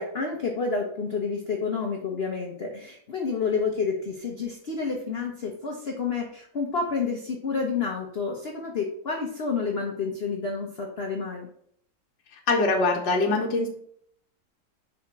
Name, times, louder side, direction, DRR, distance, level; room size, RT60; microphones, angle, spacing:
voice 1, 0.0-11.5, left 4 dB, 45° left, 1 dB, 0.9 m, -29 dB
voice 2, 12.3-13.7, left 3 dB, 70° left, -1 dB, 1.6 m, -23 dB
5.0 x 4.3 x 5.8 m, 0.65 s
omnidirectional pair, 2.0 m